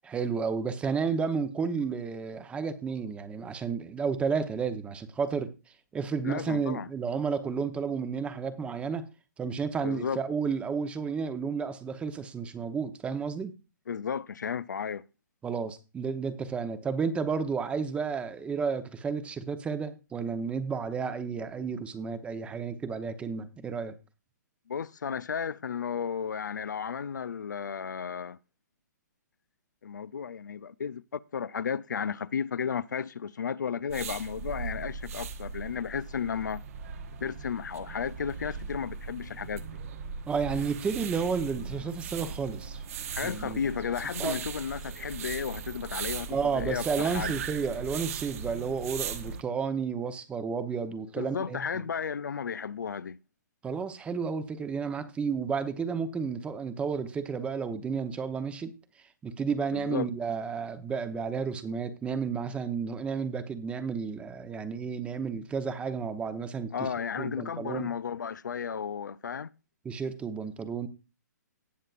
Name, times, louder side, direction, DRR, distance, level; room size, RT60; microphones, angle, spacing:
voice 1, 0.0-5.5 5.9-9.1 9.4-13.5 15.4-23.9 40.3-42.8 43.2-43.6 44.2-44.3 46.3-51.6 53.6-58.7 59.2-66.9 67.2-67.9 69.8-70.9, right 5 dB, 10° right, 0.8 m, -32 dB
voice 2, 6.2-6.9 9.8-10.2 13.9-15.1 24.7-28.4 29.8-36.6 37.2-39.7 43.1-47.4 51.2-53.2 59.7-60.1 66.7-69.5, left 7 dB, 80° left, 0.5 m, -33 dB
sound 1, 33.9-49.4, right 6 dB, 50° right, 1.1 m, -38 dB
18.5 x 6.5 x 2.5 m
hypercardioid pair, 135°, 10 cm